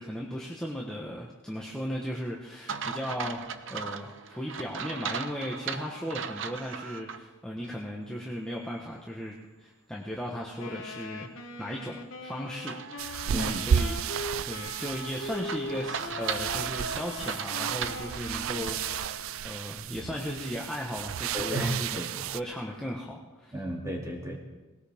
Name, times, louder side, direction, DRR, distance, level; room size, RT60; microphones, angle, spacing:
voice 1, 0.0-3.4 3.7-11.3 11.6-23.6, equal, 5° left, -3 dB, 1.2 m, -37 dB
sound 1, 2.7-7.2 7.6-7.7 12.7-19.0, right 6 dB, 65° right, 0.8 m, -38 dB
Wind instrument woodwind instrument, 10.6-19.6, left 2 dB, 80° left, 1.3 m, -41 dB
sound 2, 13.0-22.4, right 8 dB, 80° right, 0.4 m, -33 dB
voice 2, 13.3-13.7 21.3-22.2 23.5-24.4, equal, 15° right, -1 dB, 2.7 m, -33 dB
19.5 x 18.0 x 3.6 m, 1.2 s
head